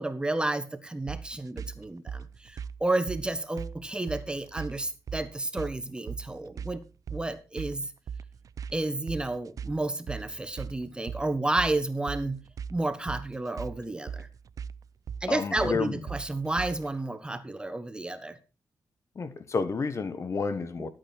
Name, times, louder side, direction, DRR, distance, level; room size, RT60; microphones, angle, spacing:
voice 1, 0.0-6.8 7.1-7.8 8.7-12.4 12.7-14.3 15.2-18.4 20.8-20.9, right 2 dB, 15° right, 10 dB, 1.3 m, -31 dB
sound 1, 1.1-17.0, right 7 dB, 60° right, 0.6 m, -39 dB
voice 2, 15.3-16.0 19.1-20.9, left 4 dB, 45° left, 12 dB, 1.3 m, -30 dB
12.5 x 8.9 x 4.4 m, 0.31 s
cardioid pair, 90°, 6 cm